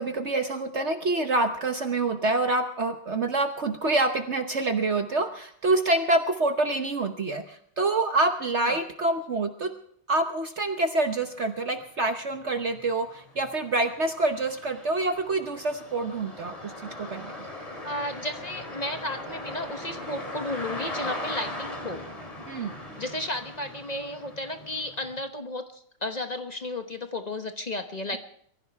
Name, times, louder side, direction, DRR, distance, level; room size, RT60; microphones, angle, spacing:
voice 1, 0.0-9.7 10.1-17.5 22.5-22.7, right 2 dB, 50° right, 6 dB, 0.8 m, -26 dB
sound 1, 11.8-11.9 12.3-25.2, left 1 dB, 15° left, 2.5 m, -39 dB
voice 2, 17.8-22.0 23.0-28.2, left 1 dB, 40° left, 6 dB, 0.5 m, -33 dB
23.0 x 15.0 x 3.4 m, 0.64 s
omnidirectional pair, 2.4 m